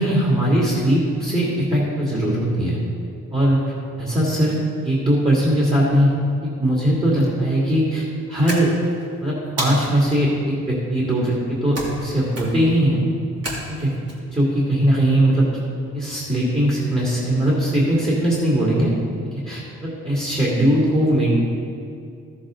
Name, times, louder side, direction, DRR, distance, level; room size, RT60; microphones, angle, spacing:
voice 1, 0.0-2.8 3.3-3.6 4.0-4.5 4.8-6.1 6.4-8.7 9.2-13.0 13.7-13.9 14.3-15.5 15.9-18.9 19.4-21.3, right 1 dB, 15° right, -6 dB, 2.6 m, -20 dB
sound 1, 8.5-9.1 9.6-10.2 11.7-12.1 12.3-12.7 13.4-14.1, right 1 dB, 55° right, 2.7 m, -30 dB
14.0 x 7.1 x 3.8 m, 2.4 s
cardioid pair, 90°, 30 cm